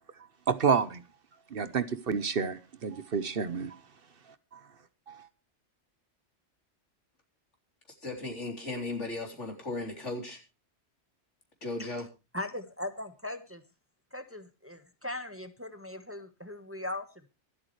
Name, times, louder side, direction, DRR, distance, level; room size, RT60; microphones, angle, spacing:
voice 1, 0.5-1.0 1.5-3.7 5.1-5.2, right 6 dB, 55° right, 1.1 m, -29 dB
voice 2, 8.0-10.4 11.6-12.1, left 2 dB, 80° left, 4.2 m, -36 dB
voice 3, 12.3-13.6 14.1-17.3, left 1 dB, 10° right, 1.2 m, -39 dB
25.0 x 8.6 x 3.2 m
omnidirectional pair, 1.2 m